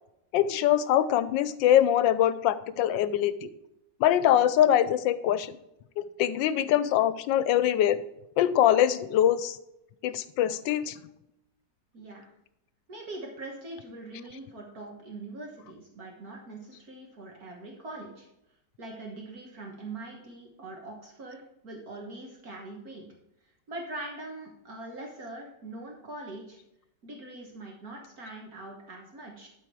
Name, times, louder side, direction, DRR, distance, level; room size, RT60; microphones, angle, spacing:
voice 1, 0.3-3.5 4.0-5.6 6.0-8.0 8.4-9.6 10.0-11.0, left 11 dB, 85° left, 15 dB, 1.3 m, -23 dB
voice 2, 11.9-12.3 12.9-18.3 18.8-21.4 21.6-23.1 23.7-26.6 27.0-29.5, right 2 dB, 55° right, 0 dB, 1.9 m, -42 dB
12.5 x 4.5 x 4.7 m, 0.84 s
omnidirectional pair, 2.0 m